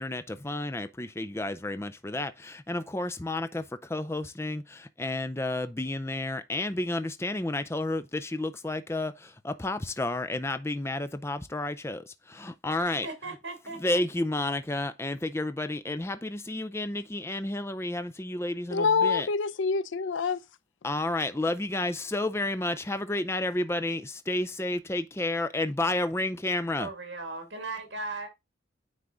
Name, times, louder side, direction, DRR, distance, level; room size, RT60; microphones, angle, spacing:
voice 1, 0.0-13.1 13.8-19.3 20.8-26.9, left 2 dB, 15° left, 0.5 m, -31 dB
voice 2, 12.8-14.0 26.8-28.3, right 3 dB, 70° right, 2.6 m, -37 dB
voice 3, 18.7-20.4, left 5 dB, 85° left, 0.5 m, -26 dB
9.6 x 3.6 x 3.9 m
head